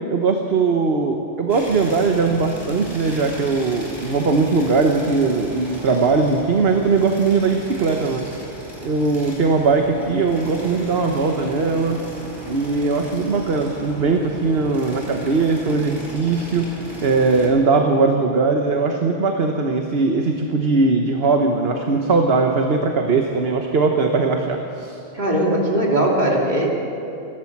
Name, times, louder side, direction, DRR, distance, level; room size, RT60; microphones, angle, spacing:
voice 1, 0.1-8.3 8.8-12.0 12.4-25.0, right 4 dB, 55° right, 3 dB, 1.4 m, -20 dB
sound 1, 1.5-17.5, right 1 dB, 20° right, 4.8 m, -35 dB
voice 2, 25.1-26.7, right 1 dB, 35° right, -2 dB, 3.3 m, -19 dB
28.5 x 12.5 x 7.3 m, 2.7 s
omnidirectional pair, 1.3 m